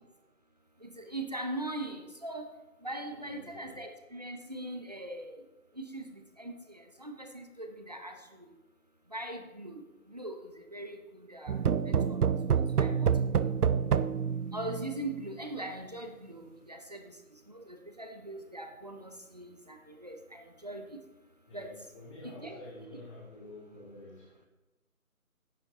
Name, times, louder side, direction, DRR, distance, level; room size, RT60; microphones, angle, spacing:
voice 1, 0.8-2.5 2.8-5.3 5.9-8.2 9.1-9.8 10.1-10.4 10.7-11.6 11.9-12.2 12.7-13.1 13.4-13.5 14.5-17.0 17.7-21.0 21.5-21.7 22.2-22.6, right 1 dB, 30° right, 5 dB, 0.6 m, -41 dB
voice 2, 3.1-3.8 21.5-24.4, left 1 dB, 20° left, -4 dB, 2.2 m, -49 dB
sound 1, 11.5-15.2, right 7 dB, 90° right, 0.6 m, -28 dB
10.0 x 8.0 x 3.8 m, 1.1 s
figure-of-eight pair, 155°, 44 cm